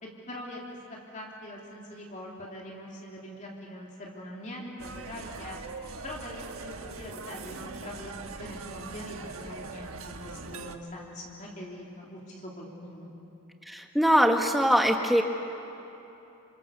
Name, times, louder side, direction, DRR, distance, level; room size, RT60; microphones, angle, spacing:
voice 1, 0.0-5.6 6.0-13.1, left 1 dB, 35° left, -2 dB, 3.0 m, -43 dB
sound 1, 4.8-10.8, right 3 dB, 70° right, 1.3 m, -41 dB
voice 2, 13.7-15.2, equal, ahead, 3 dB, 1.5 m, -22 dB
28.0 x 26.0 x 7.0 m, 3.0 s
head